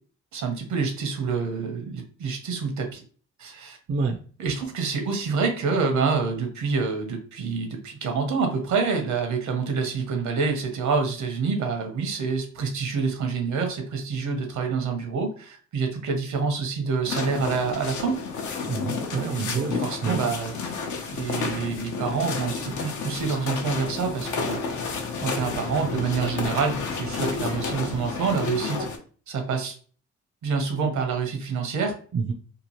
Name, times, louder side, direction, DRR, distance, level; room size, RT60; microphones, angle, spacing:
voice 1, 0.3-3.0 3.4-3.8 4.4-18.2 19.4-20.5 21.1-24.6 25.2-28.9 29.3-29.8 30.4-31.9, right 5 dB, 70° right, 4 dB, 0.9 m, -27 dB
voice 2, 3.9-4.2 18.7-20.2 32.1-32.3, right 4 dB, 40° right, 3 dB, 0.4 m, -28 dB
sound 1, 17.0-29.0, left 4 dB, 75° left, 0.7 m, -31 dB
2.9 x 2.4 x 2.8 m, 0.42 s
cardioid pair, 90°, 30 cm